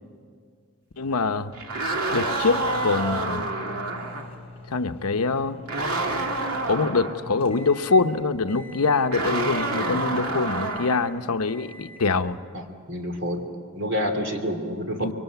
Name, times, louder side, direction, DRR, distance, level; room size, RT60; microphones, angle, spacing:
voice 1, 1.0-1.5 2.1-3.4 4.7-5.6 6.7-12.4 15.0-15.1, left 4 dB, 85° left, 9 dB, 0.9 m, -24 dB
sound 1, 1.5-4.3 5.7-7.2 9.1-11.1, right 2 dB, 85° right, 2.4 m, -28 dB
sound 2, 2.5-8.1 8.5-9.1 9.5-10.1 10.5-11.1 11.5-12.1, left 2 dB, 25° left, 6.1 m, -44 dB
voice 2, 12.5-13.4 13.7-15.1, equal, 55° right, 5 dB, 2.8 m, -29 dB
24.5 x 23.5 x 8.1 m, 2.1 s
head